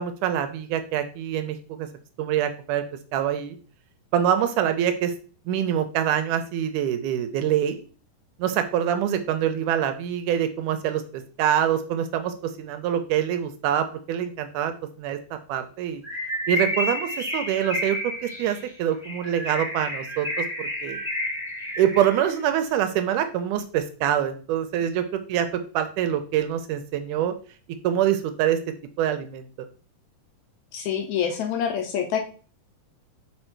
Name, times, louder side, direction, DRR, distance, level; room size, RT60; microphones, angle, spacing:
voice 1, 0.0-1.9 2.2-2.8 3.1-3.6 4.1-5.1 5.5-7.8 8.4-14.7 15.0-15.2 15.5-16.0 16.5-21.0 21.8-25.5 25.7-27.3 27.8-28.6 29.0-29.5, right 10 dB, 80° right, 9 dB, 2.0 m, -25 dB
Bird, 16.0-22.3, left 1 dB, ahead, 1.1 m, -30 dB
voice 2, 30.7-32.2, left 8 dB, 75° left, 4 dB, 1.9 m, -26 dB
5.4 x 4.3 x 4.5 m, 0.39 s
omnidirectional pair, 3.8 m